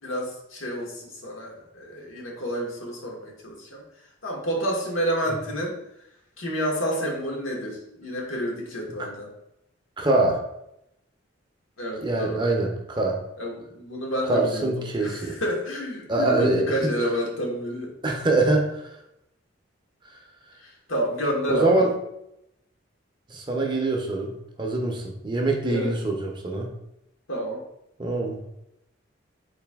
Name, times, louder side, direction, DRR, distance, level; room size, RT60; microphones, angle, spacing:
voice 1, 0.0-3.8 4.2-5.8 6.4-9.3 11.8-12.5 13.4-17.9 20.6-21.9 25.7-25.9 27.3-27.6, equal, 80° left, -1 dB, 1.1 m, -29 dB
voice 2, 10.0-10.4 12.0-13.2 14.3-15.4 16.1-16.6 18.0-18.9 21.5-21.9 23.3-26.7 28.0-28.4, right 2 dB, 25° right, 1 dB, 0.5 m, -24 dB
4.0 x 2.6 x 3.4 m, 0.82 s
head